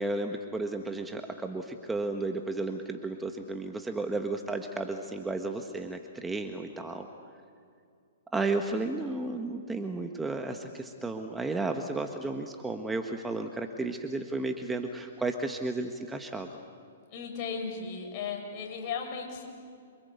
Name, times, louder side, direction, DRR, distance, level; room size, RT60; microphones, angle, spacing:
voice 1, 0.0-7.1 8.3-16.5, right 2 dB, 10° right, 5 dB, 1.5 m, -33 dB
voice 2, 17.1-19.5, left 5 dB, 40° left, 2 dB, 7.1 m, -36 dB
28.0 x 25.0 x 8.3 m, 2.3 s
hypercardioid pair, 120°, 0 cm